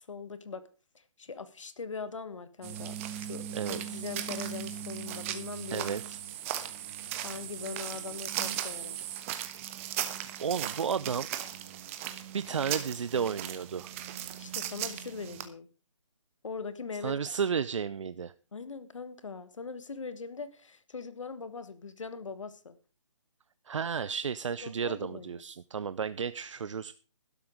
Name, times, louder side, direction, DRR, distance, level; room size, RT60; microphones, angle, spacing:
voice 1, 0.1-0.6 0.9-6.0 7.2-9.0 14.4-15.7 16.4-17.2 18.5-22.8 24.6-25.4, left 5 dB, 80° left, 13 dB, 1.6 m, -41 dB
sound 1, 2.6-15.5, right 11 dB, 25° right, 1.2 m, -37 dB
voice 2, 3.5-4.0 5.7-6.2 10.4-11.3 12.3-13.9 17.0-18.3 23.7-26.9, right 6 dB, 75° right, 15 dB, 0.6 m, -32 dB
12.0 x 10.5 x 5.0 m, 0.35 s
hypercardioid pair, 155°, 16 cm